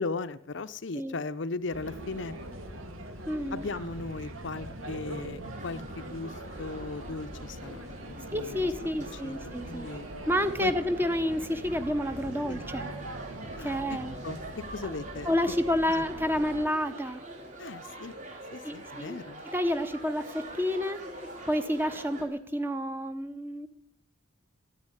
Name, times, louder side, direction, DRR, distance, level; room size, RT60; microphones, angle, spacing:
voice 1, 0.0-2.3 3.5-8.7 9.1-10.1 10.6-10.7 12.5-12.6 13.6-14.0 14.2-14.4 14.7-15.4 15.9-16.0 17.6-18.1 18.5-19.4, left 3 dB, 60° left, 14 dB, 0.6 m, -37 dB
sound 1, 1.7-16.7, right 1 dB, 75° right, 2.3 m, -42 dB
voice 2, 3.3-3.7 8.3-9.9 10.3-12.9 13.6-14.1 14.8-14.9 15.3-17.2 18.6-19.2 19.4-21.0 21.5-23.7, left 1 dB, 10° right, 10 dB, 0.9 m, -29 dB
sound 2, 5.4-22.2, right 2 dB, 35° right, 3.3 m, -45 dB
13.5 x 9.8 x 9.9 m, 0.79 s
head